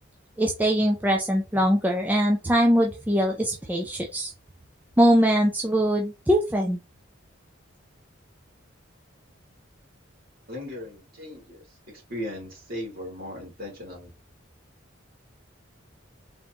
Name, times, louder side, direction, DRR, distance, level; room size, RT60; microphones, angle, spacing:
voice 1, 0.4-4.3 5.0-6.8, equal, 10° right, 1 dB, 0.5 m, -22 dB
voice 2, 10.5-11.6 12.1-14.1, left 1 dB, 50° right, -2 dB, 2.6 m, -37 dB
3.8 x 3.6 x 2.8 m, 0.26 s
head